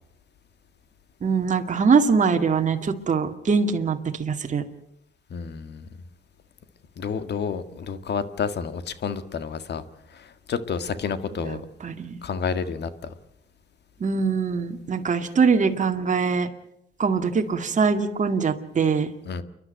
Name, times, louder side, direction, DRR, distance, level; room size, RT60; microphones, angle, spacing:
voice 1, 1.2-4.6 11.4-12.2 14.0-16.5 17.0-19.1, right 5 dB, 40° right, 4 dB, 2.1 m, -23 dB
voice 2, 5.3-5.9 7.0-9.8 10.1-11.6 12.2-13.1 19.3-19.4, left 6 dB, 60° left, 11 dB, 1.8 m, -30 dB
29.5 x 11.5 x 9.1 m, 0.79 s
cardioid pair, 90°, 20 cm